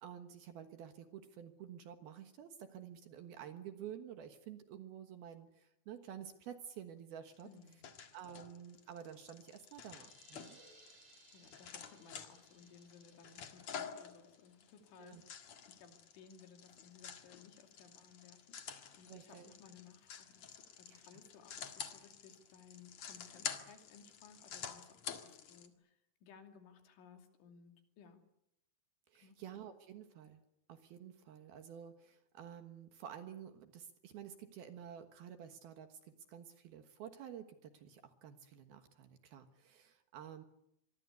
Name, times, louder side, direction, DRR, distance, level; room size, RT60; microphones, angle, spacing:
voice 1, 0.0-7.5 8.1-10.6 15.0-15.2 19.1-19.5 20.9-21.0 29.1-30.4 30.7-40.4, right 9 dB, 65° right, 8 dB, 2.8 m, -51 dB
sound 1, 7.3-25.7, left 7 dB, 55° left, 2.1 m, -49 dB
voice 2, 7.4-7.9 10.7-28.2 29.1-29.4, left 6 dB, 75° left, 5 dB, 5.2 m, -60 dB
sound 2, 9.5-15.1, right 3 dB, 40° right, 7.8 m, -66 dB
25.5 x 22.5 x 8.2 m, 0.80 s
omnidirectional pair, 5.5 m